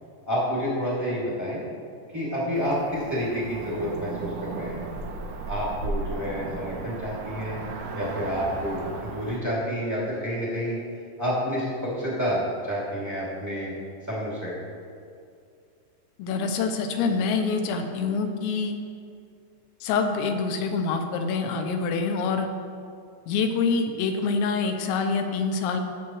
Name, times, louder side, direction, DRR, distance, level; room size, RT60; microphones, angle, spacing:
voice 1, 0.3-1.6 2.1-4.8 5.5-7.6 7.9-10.8 11.2-13.7 14.0-14.5, equal, 15° right, -8 dB, 0.7 m, -29 dB
Cricket / Motor vehicle (road), 2.5-9.4, right 3 dB, 75° right, 3.1 m, -35 dB
voice 2, 16.2-18.8 19.8-22.5 23.3-25.8, left 4 dB, 90° left, 5 dB, 3.1 m, -26 dB
17.5 x 7.5 x 3.1 m, 2.4 s
omnidirectional pair, 5.2 m